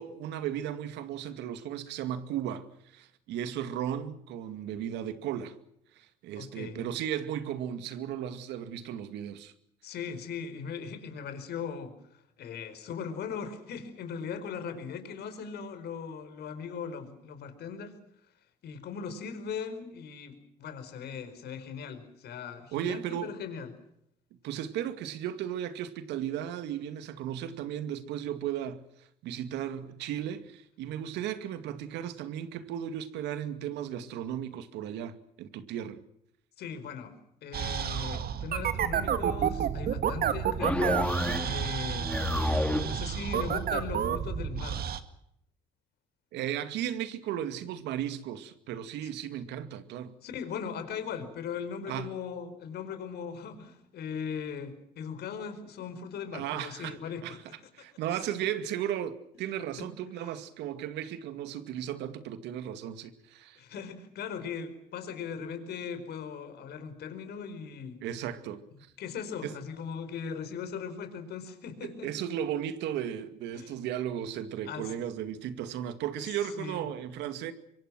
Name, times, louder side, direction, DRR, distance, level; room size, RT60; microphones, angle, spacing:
voice 1, 0.0-5.6 6.0-9.5 22.7-23.4 24.4-36.0 41.3-41.4 46.3-50.2 51.9-52.1 56.3-57.4 57.7-63.6 68.0-68.6 69.4-69.5 71.8-77.5, right 10 dB, 75° right, 2.3 m, -35 dB
voice 2, 6.3-6.8 9.8-11.9 12.4-17.9 18.6-23.7 36.6-37.1 37.4-41.0 41.3-42.2 42.8-44.8 49.0-49.1 50.2-57.4 59.8-59.9 63.6-68.0 69.0-72.1 73.5-73.8 74.6-74.9 76.3-76.9, left 6 dB, 65° left, 4.9 m, -39 dB
sound 1, 37.5-45.0, right 8 dB, 60° right, 2.1 m, -30 dB
sound 2, 40.6-41.6 41.9-43.0, left 1 dB, 5° left, 3.1 m, -29 dB
25.5 x 24.0 x 6.2 m
supercardioid pair, 65°, 18 cm